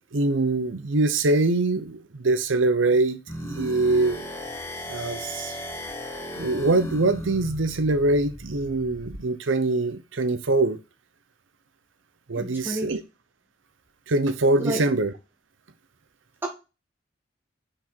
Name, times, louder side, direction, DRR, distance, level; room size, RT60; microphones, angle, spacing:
voice 1, 0.1-4.2 4.9-5.5 6.4-10.8 12.3-13.0 14.1-15.1, right 2 dB, 90° right, 0.8 m, -23 dB
sound 1, 3.3-9.2, equal, 15° left, 1.2 m, -36 dB
voice 2, 12.3-12.9 14.6-14.8 16.4-16.5, right 1 dB, 10° right, 2.1 m, -30 dB
5.9 x 5.0 x 4.3 m
head